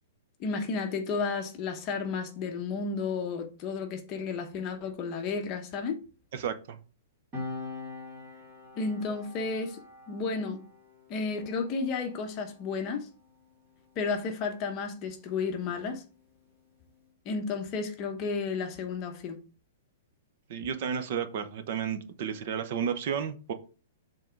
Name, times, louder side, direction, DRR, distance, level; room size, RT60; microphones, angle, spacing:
voice 1, 0.4-6.0 8.8-9.8 10.1-10.6 11.1-13.1 14.0-16.0 17.2-19.4, left 4 dB, 25° left, 0.9 m, -32 dB
voice 2, 6.3-6.8 20.5-23.5, right 7 dB, 40° right, 0.8 m, -32 dB
Piano, 7.3-14.3 14.6-14.8, left 3 dB, 20° right, 2.3 m, -44 dB
7.3 x 3.8 x 4.6 m
hypercardioid pair, 175°, 0 cm